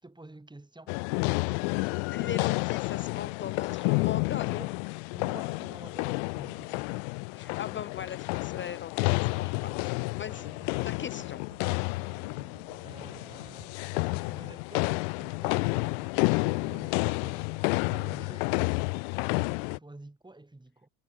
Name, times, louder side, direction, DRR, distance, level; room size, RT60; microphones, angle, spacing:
voice 1, 0.0-1.0 4.5-4.7 5.1-7.1 7.7-7.8 10.2-10.6 12.8-13.7 14.0-19.0 19.3-20.9, right 2 dB, 10° right, 7.2 m, -49 dB
sound 1, 0.9-19.8, left 36 dB, 65° left, 0.5 m, -30 dB
voice 2, 2.1-4.7 7.3-10.5 10.8-11.4, left 9 dB, 30° left, 0.8 m, -39 dB
sound 2, 9.1-13.8, right 8 dB, 45° right, 5.5 m, -55 dB
hypercardioid pair, 60°, 38 cm